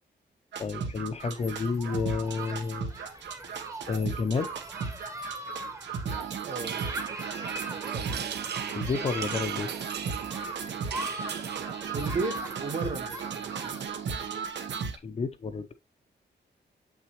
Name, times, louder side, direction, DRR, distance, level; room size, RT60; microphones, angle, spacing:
sound 1, 0.5-15.0, right 6 dB, 80° right, 1.1 m, -36 dB
voice 1, 0.6-2.9 3.9-4.5 8.8-9.7 15.0-15.7, left 4 dB, 35° left, 0.6 m, -30 dB
Human group actions, 1.2-13.9, right 1 dB, 15° right, 1.0 m, -41 dB
voice 2, 6.4-6.8 11.9-13.9, right 3 dB, 45° right, 1.2 m, -34 dB
sound 2, 6.6-11.7, right 8 dB, 65° right, 0.7 m, -39 dB
7.2 x 5.8 x 2.9 m
wide cardioid pair, 170°, 18 cm